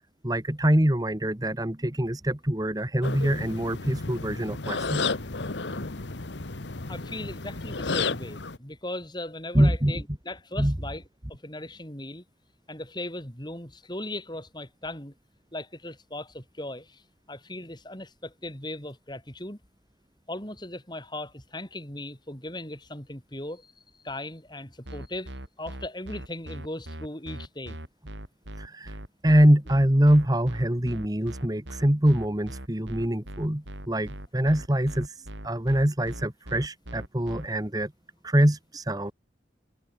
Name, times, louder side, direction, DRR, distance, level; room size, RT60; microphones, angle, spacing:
voice 1, 0.2-5.0 5.8-5.9 9.5-10.0 10.6-10.7 28.6-28.9 29.2-35.1 35.4-37.9 38.2-39.1, right 1 dB, 20° right, 1.6 m, -24 dB
sound 1, 3.0-8.6, left 4 dB, 80° left, 1.4 m, -32 dB
voice 2, 6.9-11.0 11.3-12.2 12.7-15.1 15.5-17.0 17.3-19.6 20.3-23.7 24.0-25.3 25.6-27.8, left 1 dB, 25° left, 5.6 m, -38 dB
sound 2, 24.8-37.5, right 1 dB, 85° right, 7.0 m, -40 dB
head